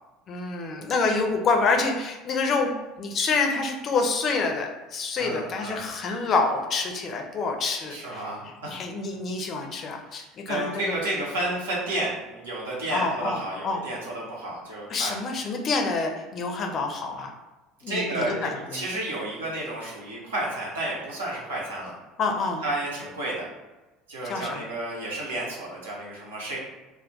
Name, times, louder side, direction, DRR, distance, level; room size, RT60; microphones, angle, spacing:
voice 1, 0.3-2.7 3.0-8.2 8.7-11.0 12.9-13.8 14.9-17.3 17.8-18.8 22.2-22.6 24.2-24.6, left 4 dB, 40° left, 2 dB, 0.4 m, -27 dB
voice 2, 5.2-5.8 7.9-8.8 10.2-15.2 17.9-21.9 22.6-23.5 24.1-26.6, right 1 dB, 75° right, -4 dB, 0.8 m, -31 dB
2.3 x 2.2 x 3.8 m, 1.1 s
figure-of-eight pair, 65°, 0 cm